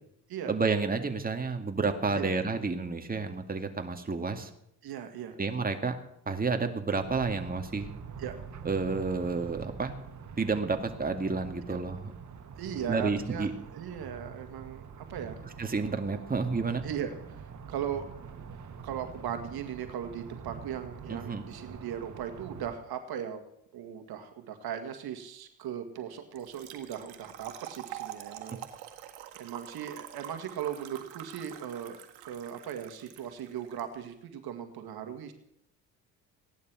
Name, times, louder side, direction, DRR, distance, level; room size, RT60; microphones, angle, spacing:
voice 1, 0.5-4.5 5.4-6.0 6.3-7.9 8.7-9.9 10.4-12.1 12.9-13.5 15.6-16.8 21.1-21.4, right 4 dB, 20° right, 5 dB, 2.1 m, -30 dB
voice 2, 4.8-5.4 8.2-8.4 11.7-11.8 12.6-15.4 16.1-16.2 16.8-18.0 18.8-23.4 23.7-28.6 29.4-35.3, right 9 dB, 60° right, 7 dB, 1.9 m, -38 dB
sound 1, 7.0-22.8, right 6 dB, 45° right, 2.0 m, -45 dB
Trickle dribble / Fill (with liquid), 26.4-33.8, right 13 dB, 80° right, 1.8 m, -46 dB
17.0 x 11.0 x 6.3 m, 0.77 s
supercardioid pair, 65°, 41 cm